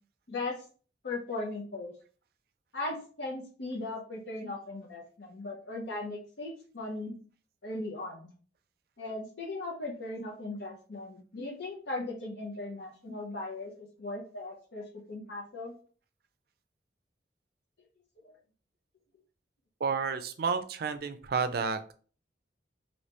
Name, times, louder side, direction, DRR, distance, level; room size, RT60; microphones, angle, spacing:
voice 1, 0.3-0.6 1.0-1.9 2.7-7.2 7.6-8.3 9.0-15.7 18.2-18.3, left 2 dB, 70° left, 0 dB, 0.7 m, -38 dB
voice 2, 19.8-21.9, right 5 dB, 55° right, 9 dB, 0.4 m, -31 dB
3.2 x 2.8 x 2.9 m, 0.41 s
head